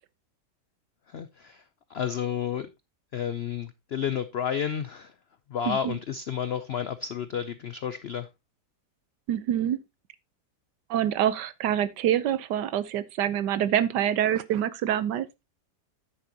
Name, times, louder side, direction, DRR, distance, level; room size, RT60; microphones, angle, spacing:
voice 1, 1.1-1.6 1.9-2.7 3.1-5.1 5.5-8.3, left 8 dB, 80° left, 0.5 m, -31 dB
voice 2, 5.7-6.0 9.3-9.8 10.9-15.3, right 10 dB, 85° right, 1.4 m, -26 dB
9.7 x 8.9 x 2.8 m
omnidirectional pair, 1.8 m